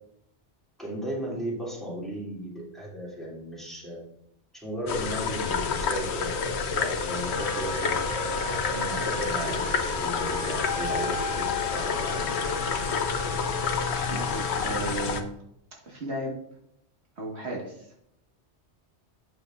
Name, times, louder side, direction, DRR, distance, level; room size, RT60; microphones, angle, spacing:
voice 1, 0.8-4.0 4.5-8.0 8.6-9.6 10.0-12.5, right 1 dB, ahead, -6 dB, 2.6 m, -36 dB
sound 1, 4.9-15.2, left 5 dB, 70° left, 1.0 m, -29 dB
sound 2, 5.7-12.4, left 4 dB, 50° left, 0.5 m, -41 dB
Wind instrument woodwind instrument, 7.1-14.8, left 2 dB, 90° left, 2.2 m, -34 dB
voice 2, 14.1-15.3 15.8-16.3 17.2-17.9, right 1 dB, 65° right, -2 dB, 1.9 m, -35 dB
8.7 x 6.6 x 2.5 m, 0.74 s
omnidirectional pair, 1.2 m